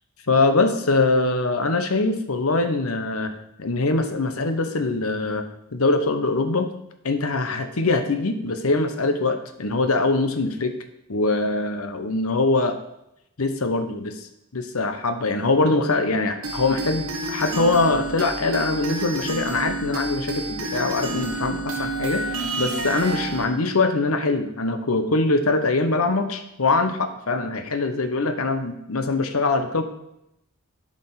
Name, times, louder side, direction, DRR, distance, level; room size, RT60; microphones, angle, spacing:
voice 1, 0.3-3.3 3.6-5.5 5.7-6.7 7.0-10.7 11.1-12.8 13.4-29.8, left 3 dB, 85° left, 8 dB, 1.0 m, -23 dB
sound 1, 16.4-23.5, right 2 dB, 75° right, 1.5 m, -29 dB
11.0 x 5.1 x 5.8 m, 0.84 s
head